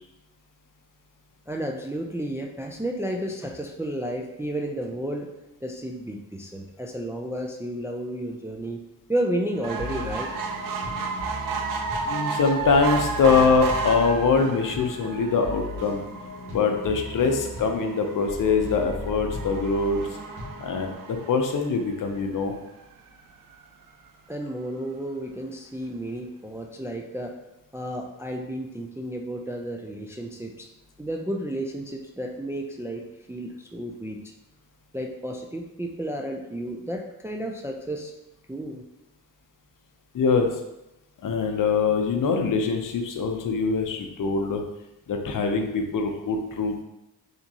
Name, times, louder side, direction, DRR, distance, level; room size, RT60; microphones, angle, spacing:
voice 1, 1.5-5.3 5.6-8.8 9.1-10.3 24.3-27.4 27.7-30.7 31.0-33.0 33.3-34.2 34.9-38.1 38.5-38.8, right 1 dB, 5° right, 2 dB, 0.3 m, -32 dB
sound 1, 9.5-20.9, left 1 dB, 80° right, 1.3 m, -38 dB
sound 2, 9.6-22.2 22.8-22.9 23.2-23.3 23.5-23.6, right 4 dB, 60° right, 0.5 m, -33 dB
voice 2, 12.1-16.0 16.5-20.0 20.6-22.5 40.1-40.6 41.2-44.6 45.1-46.8, left 4 dB, 55° left, 4 dB, 0.6 m, -23 dB
3.4 x 2.9 x 2.8 m, 0.91 s
cardioid pair, 55°, 38 cm